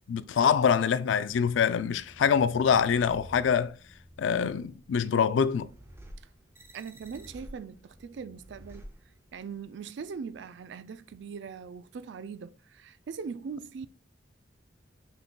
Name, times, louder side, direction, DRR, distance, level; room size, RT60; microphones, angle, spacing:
voice 1, 0.1-3.8 4.2-5.7, left 7 dB, 80° left, 0.4 m, -25 dB
sound 1, 1.6-9.6, equal, 15° right, 0.6 m, -51 dB
voice 2, 6.7-8.9 9.3-13.9, right 5 dB, 65° right, 0.3 m, -41 dB
5.8 x 3.8 x 2.2 m
head